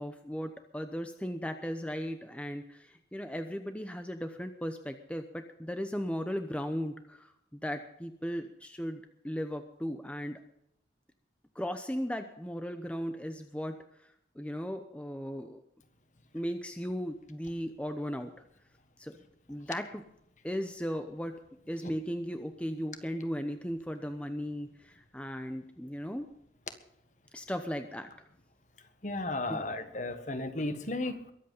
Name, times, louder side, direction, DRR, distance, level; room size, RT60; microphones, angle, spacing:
voice 1, 0.0-10.4 11.5-13.8 14.4-15.6 16.3-18.3 19.0-19.2 19.5-20.0 20.4-21.4 21.7-26.3 27.3-28.1 29.5-29.7, equal, 5° left, 7 dB, 0.9 m, -36 dB
voice 2, 29.0-31.3, left 2 dB, 40° left, 9 dB, 1.6 m, -34 dB
22.0 x 8.3 x 5.6 m, 0.76 s
head